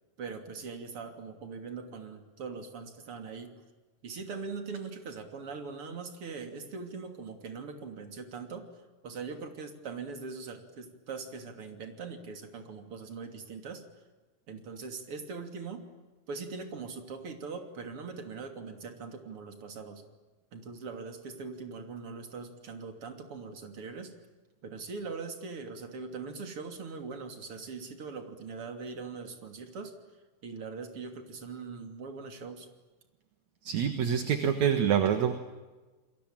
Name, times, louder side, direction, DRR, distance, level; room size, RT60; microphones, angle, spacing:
voice 1, 0.2-3.5 4.0-8.7 9.0-13.8 14.5-15.8 16.3-20.0 20.5-24.1 24.6-29.9 30.4-32.7, right 4 dB, 45° right, 6 dB, 3.7 m, -41 dB
voice 2, 33.6-35.3, right 8 dB, 65° right, 8 dB, 2.7 m, -26 dB
29.0 x 22.0 x 9.0 m, 1.2 s
omnidirectional pair, 3.7 m